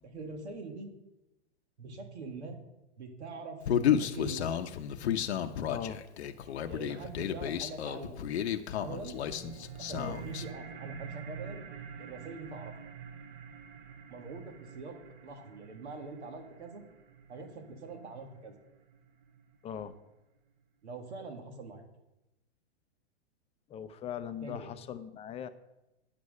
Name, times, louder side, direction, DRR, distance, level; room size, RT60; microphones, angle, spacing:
voice 1, 0.0-0.9 1.8-2.6 3.0-4.6 6.7-8.2 8.8-9.2 9.8-11.6 12.0-12.7 14.1-15.0 15.2-16.8 17.3-18.5 20.8-21.8 24.4-24.7, right 3 dB, 75° right, 4 dB, 2.0 m, -43 dB
Human voice, 3.7-10.5, left 9 dB, 70° left, 0.9 m, -32 dB
voice 2, 5.7-6.0 10.0-10.2 19.6-19.9 23.7-25.5, left 9 dB, 20° left, 10 dB, 0.6 m, -40 dB
sound 1, 8.7-19.7, right 6 dB, 55° right, 1.2 m, -47 dB
9.8 x 6.1 x 6.5 m, 0.96 s
hypercardioid pair, 120°, 33 cm